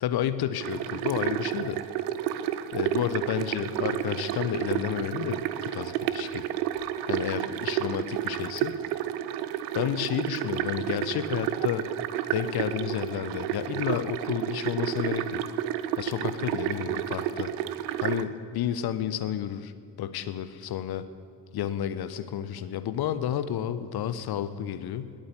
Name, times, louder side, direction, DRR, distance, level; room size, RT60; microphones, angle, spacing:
voice 1, 0.0-1.8 2.7-6.4 7.1-8.8 9.7-11.9 12.3-15.4 16.0-17.5 18.0-19.7 20.0-21.0 21.5-25.1, left 10 dB, 50° left, 12 dB, 1.1 m, -31 dB
sound 1, 0.6-18.2, right 11 dB, 70° right, 0.8 m, -31 dB
20.5 x 8.6 x 8.3 m, 2.5 s
figure-of-eight pair, 40°, 48 cm